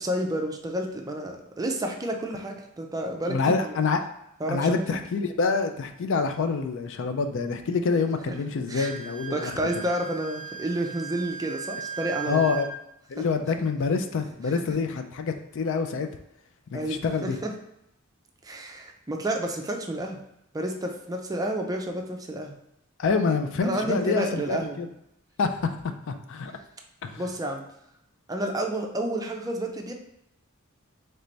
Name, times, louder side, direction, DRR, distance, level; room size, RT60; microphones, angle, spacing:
voice 1, 0.0-3.8 4.4-5.0 8.3-8.4 8.7-8.9 9.3-12.4 13.2-13.3 16.7-17.5 18.4-20.2 20.5-22.5 23.6-24.8 27.2-27.6 28.3-29.9, right 1 dB, 15° right, 3 dB, 0.5 m, -30 dB
voice 2, 3.3-4.0 4.5-9.5 12.2-12.7 13.1-16.1 16.7-17.4 23.0-24.9 25.4-25.8 26.1-26.5 27.0-27.2, left 4 dB, 65° left, 7 dB, 0.4 m, -26 dB
Wind instrument woodwind instrument, 8.7-12.7, right 7 dB, 10° left, 0.8 m, -38 dB
3.3 x 3.2 x 3.9 m, 0.81 s
head